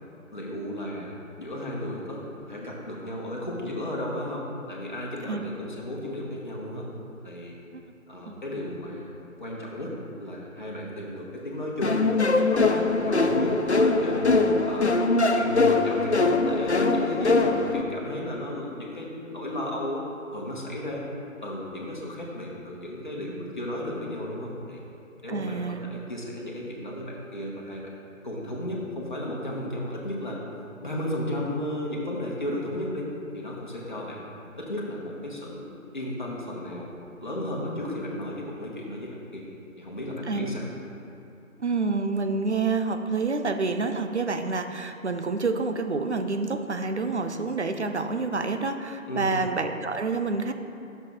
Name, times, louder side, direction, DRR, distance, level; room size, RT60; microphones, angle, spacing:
voice 1, 0.3-6.8 7.2-7.6 8.1-9.9 10.2-12.0 12.3-20.0 20.3-21.0 21.4-24.8 25.2-27.9 28.2-30.4 30.8-34.2 34.6-35.6 35.9-36.9 37.2-39.4 39.8-40.7 49.1-49.4, left 1 dB, 35° left, -4 dB, 1.2 m, -34 dB
sound 1, 11.8-17.8, left 3 dB, 55° left, 0.5 m, -22 dB
voice 2, 25.3-25.9 40.3-40.5 41.6-50.5, right 3 dB, 55° right, 7 dB, 0.6 m, -28 dB
11.5 x 6.7 x 3.1 m, 2.7 s
figure-of-eight pair, 175°, 41 cm